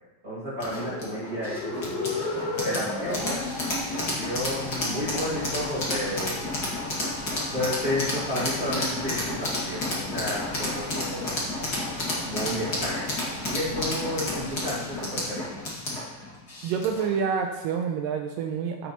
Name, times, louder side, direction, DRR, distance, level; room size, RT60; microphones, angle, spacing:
voice 1, 0.2-2.3 2.6-3.5 3.9-6.5 7.5-11.4 12.3-13.1 13.5-15.6, left 1 dB, 30° right, -9 dB, 1.8 m, -32 dB
sound 1, 0.6-17.1, left 2 dB, 35° left, 1.8 m, -31 dB
Vehicle horn car horn honking, 4.6-5.5 6.3-8.5 9.0-9.8 10.3-11.1 11.7-12.4, left 4 dB, 70° left, 2.2 m, -45 dB
voice 2, 16.6-18.9, right 6 dB, 80° right, 4 dB, 2.0 m, -28 dB
14.5 x 6.9 x 2.9 m, 1.1 s
omnidirectional pair, 4.3 m